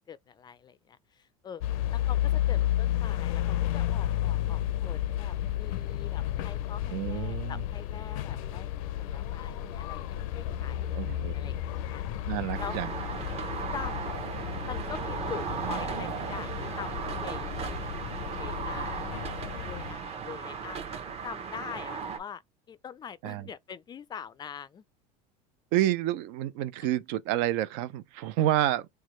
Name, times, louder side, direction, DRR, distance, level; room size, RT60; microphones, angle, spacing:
voice 1, 0.1-1.6 1.9-10.9 11.1-12.0 12.6-12.8 13.7-14.1 14.7-17.9 18.4-19.1 19.6-20.9 21.2-22.4 22.7-24.8, left 7 dB, 25° left, 0.3 m, -44 dB
sound 1, 1.6-19.9, left 12 dB, 85° left, 0.5 m, -32 dB
voice 2, 6.9-7.6 10.9-11.3 12.3-12.9 23.2-23.5 25.7-28.9, right 13 dB, 70° right, 0.4 m, -29 dB
sound 2, 12.5-22.2, right 6 dB, 35° right, 0.9 m, -36 dB
4.5 x 2.2 x 3.1 m
supercardioid pair, 115°, 17 cm